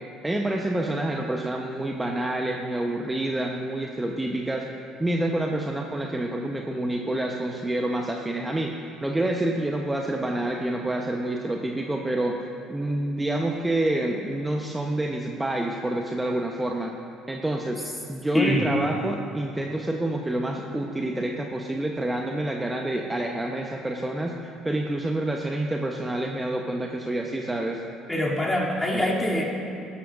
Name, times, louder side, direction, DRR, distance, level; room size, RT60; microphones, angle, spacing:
voice 1, 0.2-4.7 5.0-12.4 12.7-16.9 17.3-17.8 18.1-27.8, right 1 dB, 15° right, 1 dB, 1.0 m, -28 dB
voice 2, 18.3-18.7 28.1-29.4, left 1 dB, 10° left, -4 dB, 3.0 m, -24 dB
18.5 x 12.5 x 2.6 m, 2.7 s
figure-of-eight pair, 55°, 0 cm